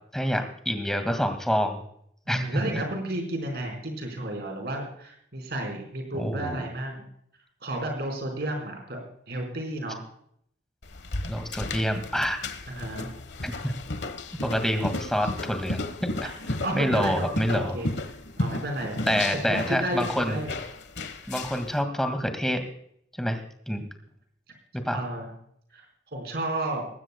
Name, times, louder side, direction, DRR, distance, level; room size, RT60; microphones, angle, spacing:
voice 1, 0.1-1.8 2.3-2.8 6.1-6.6 11.3-12.4 13.4-13.7 14.4-16.1 16.7-17.8 19.1-20.4 21.3-22.6 23.2-23.4 23.7-23.9 24.7-25.0, equal, 5° left, 6 dB, 2.0 m, -27 dB
voice 2, 2.3-7.0 7.6-9.0 9.3-10.0 12.7-13.1 16.6-17.9 18.4-20.6 24.9-25.3 25.7-25.8 26.1-26.8, right 1 dB, 65° right, 3 dB, 4.7 m, -32 dB
sound 1, 10.8-21.7, left 2 dB, 75° left, 1.3 m, -34 dB
20.5 x 15.5 x 2.2 m, 0.68 s
head